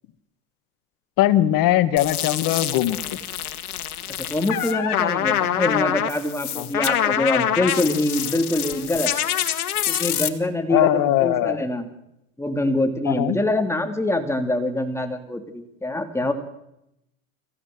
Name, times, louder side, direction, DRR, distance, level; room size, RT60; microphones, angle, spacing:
voice 1, 1.2-3.0 6.6-6.7 10.7-11.6 13.0-13.4, left 13 dB, 50° left, 13 dB, 1.6 m, -20 dB
sound 1, 2.0-10.3, left 11 dB, 85° left, 1.6 m, -25 dB
voice 2, 4.3-9.1 9.9-11.9 12.4-16.3, left 1 dB, 5° left, 6 dB, 2.6 m, -24 dB
22.5 x 15.5 x 7.8 m, 0.84 s
hypercardioid pair, 95°, 43 cm